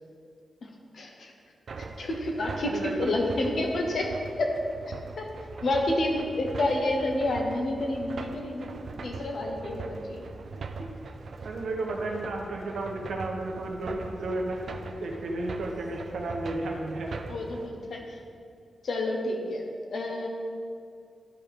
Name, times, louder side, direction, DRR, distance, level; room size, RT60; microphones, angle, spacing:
voice 1, 0.9-1.3 1.8-4.1 4.4-4.5 5.2-5.3 5.6-10.3 17.3-18.2 18.8-19.6 19.9-20.3, left 1 dB, 55° left, 1 dB, 1.0 m, -29 dB
sound 1, 1.7-17.7, right 3 dB, 60° right, 0.5 m, -41 dB
voice 2, 2.6-3.0 11.4-14.6 15.0-17.1, right 2 dB, 85° right, 1 dB, 1.1 m, -33 dB
12.0 x 4.7 x 3.6 m, 2.3 s
wide cardioid pair, 145°, 0 cm